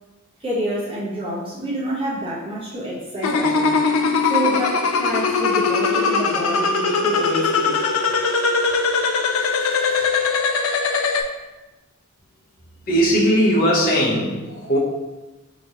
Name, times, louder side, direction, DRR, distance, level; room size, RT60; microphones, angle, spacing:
voice 1, 0.4-3.8 4.2-7.8 9.4-10.1, right 1 dB, 25° right, -8 dB, 1.0 m, -27 dB
sound 1, 3.2-11.2, left 4 dB, 80° left, 0.4 m, -20 dB
voice 2, 12.9-14.8, equal, 45° left, -5 dB, 1.0 m, -18 dB
4.2 x 3.0 x 2.9 m, 1.1 s
head